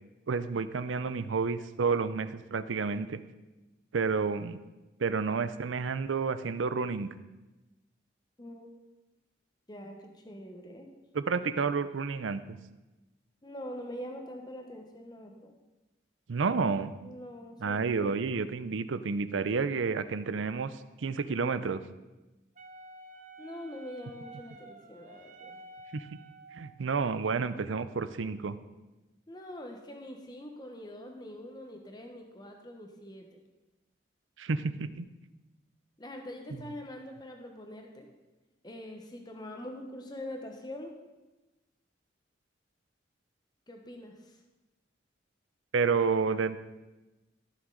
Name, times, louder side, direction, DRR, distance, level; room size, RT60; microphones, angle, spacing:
voice 1, 0.3-3.2 3.9-4.6 5.0-7.1 11.1-12.6 16.3-16.9 17.6-20.7 21.0-21.8 25.9-26.2 26.5-28.6 34.4-35.1 45.7-46.6, right 5 dB, 90° right, 13 dB, 0.5 m, -30 dB
voice 2, 8.4-8.8 9.7-10.9 13.4-15.5 17.0-18.1 23.4-25.6 29.3-33.3 36.0-38.1 38.6-40.9 43.7-44.1, left 1 dB, 20° left, 3 dB, 1.0 m, -44 dB
Wind instrument woodwind instrument, 22.6-26.7, right 2 dB, 40° right, 0.7 m, -50 dB
14.0 x 6.3 x 3.9 m, 1.1 s
head